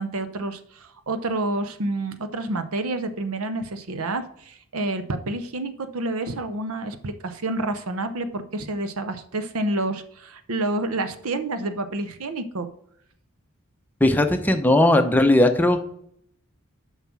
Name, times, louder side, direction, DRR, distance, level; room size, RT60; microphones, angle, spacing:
voice 1, 0.0-12.7, right 2 dB, 85° right, 9 dB, 0.8 m, -29 dB
voice 2, 14.0-15.8, left 1 dB, 10° left, 6 dB, 0.7 m, -18 dB
7.2 x 5.6 x 6.0 m, 0.70 s
head